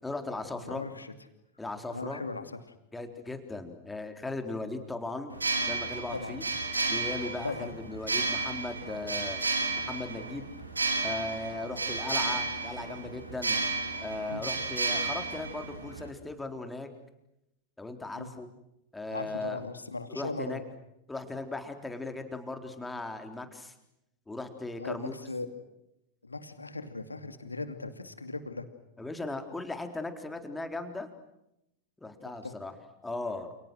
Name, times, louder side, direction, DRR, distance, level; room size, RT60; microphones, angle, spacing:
voice 1, 0.0-0.8 1.6-2.2 2.9-5.3 5.7-6.4 6.9-9.4 9.9-10.5 11.0-13.6 14.0-16.9 17.8-18.5 18.9-19.6 20.1-20.6 21.1-23.7 24.3-25.1 29.0-31.1 32.0-32.7 33.0-33.5, left 2 dB, 10° left, 6 dB, 4.0 m, -37 dB
voice 2, 0.6-1.1 1.9-2.6 6.1-6.4 7.4-7.7 14.3-14.4 18.1-18.3 19.1-20.6 24.8-25.5 26.2-28.7 32.2-32.5, left 3 dB, 80° left, 9 dB, 2.6 m, -38 dB
sound 1, 5.3-16.1, right 3 dB, 80° right, 4.4 m, -32 dB
29.5 x 29.5 x 6.4 m, 0.85 s
figure-of-eight pair, 90°, 0 cm